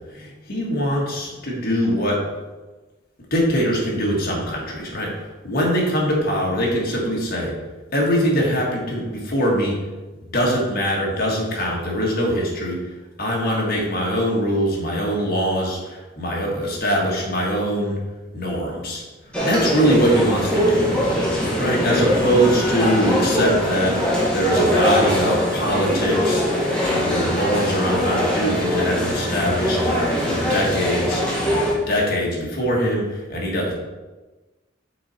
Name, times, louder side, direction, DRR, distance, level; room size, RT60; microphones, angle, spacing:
voice 1, 0.0-2.2 3.3-7.5 7.9-9.8 10.2-12.8 13.2-18.0 18.3-19.0 19.4-20.9 21.3-24.0 24.3-33.7, equal, 50° left, -3 dB, 1.7 m, -22 dB
sound 1, 19.3-31.7, equal, 5° left, 1.4 m, -22 dB
6.5 x 4.1 x 4.4 m, 1.2 s
head